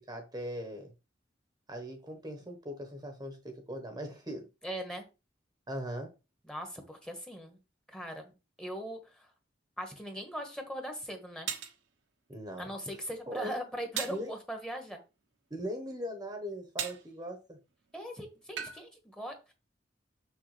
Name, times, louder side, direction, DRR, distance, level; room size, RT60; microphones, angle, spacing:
voice 1, 0.1-0.9 1.7-4.5 5.7-6.1 12.3-12.7 13.3-13.6 14.1-14.3 15.5-17.6, equal, 20° right, 1.1 m, -40 dB
voice 2, 4.6-5.1 6.5-7.6 7.9-9.3 9.8-11.5 12.6-15.0 17.9-19.5, equal, 5° left, 1.3 m, -40 dB
sound 1, 10.4-10.5 11.5-11.8 14.0-14.3 16.8-17.1 18.6-18.8, right 9 dB, 75° right, 1.1 m, -36 dB
6.9 x 6.3 x 3.3 m
head